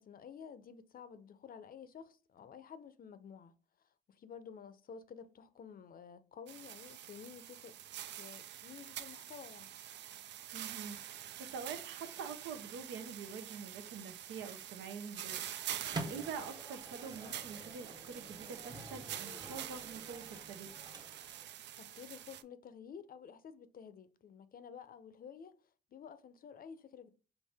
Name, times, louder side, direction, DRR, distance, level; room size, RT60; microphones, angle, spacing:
voice 1, 0.0-3.5 4.1-7.8 8.2-9.7 21.8-25.6 25.9-27.1, left 7 dB, 50° left, 0.6 m, -52 dB
sound 1, 6.5-22.4, right 11 dB, 60° right, 0.4 m, -46 dB
voice 2, 10.5-20.7, right 6 dB, 85° right, 0.8 m, -46 dB
Microwave oven, 15.5-21.5, right 2 dB, 20° right, 0.7 m, -48 dB
4.6 x 2.7 x 3.4 m
cardioid pair, 90°, 20 cm